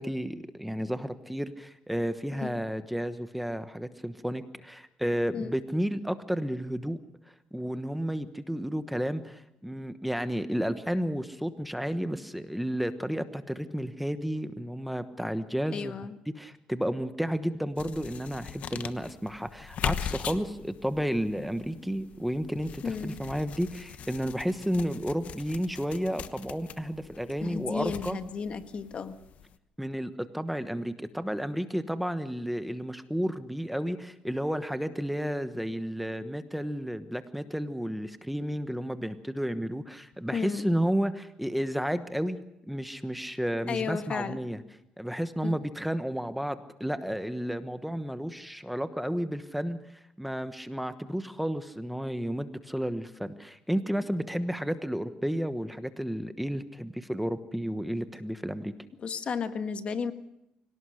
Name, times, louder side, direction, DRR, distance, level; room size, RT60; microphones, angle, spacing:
voice 1, 0.0-7.0 7.3-15.9 16.4-28.2 29.8-42.4 42.6-44.6 45.0-49.8 50.2-58.7, equal, ahead, 10 dB, 1.2 m, -32 dB
voice 2, 15.7-16.2 22.8-23.1 27.4-29.2 40.3-40.7 43.7-44.4 45.4-45.6 59.0-60.1, left 6 dB, 45° left, 10 dB, 1.5 m, -33 dB
sound 1, 17.8-29.5, left 8 dB, 60° left, 1.1 m, -40 dB
25.0 x 17.5 x 6.5 m, 0.84 s
cardioid pair, 100°, 3 cm